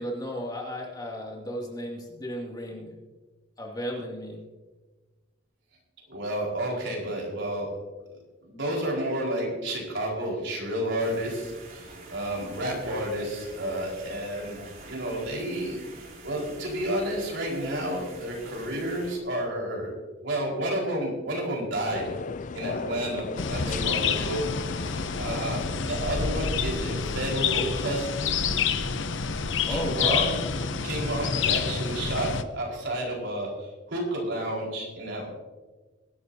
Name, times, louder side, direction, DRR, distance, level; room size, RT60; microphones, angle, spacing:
voice 1, 0.0-2.9 3.6-4.4 23.5-23.9 29.7-30.3, equal, 20° left, -1 dB, 2.4 m, -34 dB
voice 2, 6.1-7.8 8.4-15.8 16.2-19.9 20.2-22.1 22.5-24.4 24.8-28.5 29.6-30.3 30.8-35.3, right 1 dB, 70° right, -2 dB, 4.6 m, -31 dB
sound 1, 11.0-19.2, right 3 dB, 45° right, 3.2 m, -46 dB
sound 2, 21.9-27.3, left 4 dB, 40° left, 0.4 m, -38 dB
sound 3, 23.4-32.4, left 6 dB, 70° left, 0.8 m, -28 dB
23.0 x 11.5 x 2.8 m, 1.3 s
head